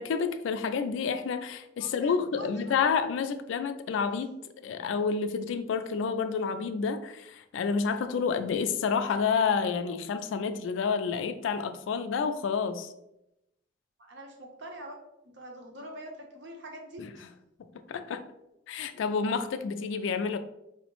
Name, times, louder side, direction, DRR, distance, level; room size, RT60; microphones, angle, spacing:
voice 1, 0.0-4.4 4.6-12.9 17.0-17.1 17.9-18.2 18.7-20.4, left 5 dB, 85° left, 9 dB, 0.3 m, -29 dB
voice 2, 1.8-2.6 14.0-15.0 15.2-17.3, right 1 dB, 65° right, 2 dB, 0.7 m, -44 dB
4.6 x 2.1 x 2.9 m, 0.85 s
head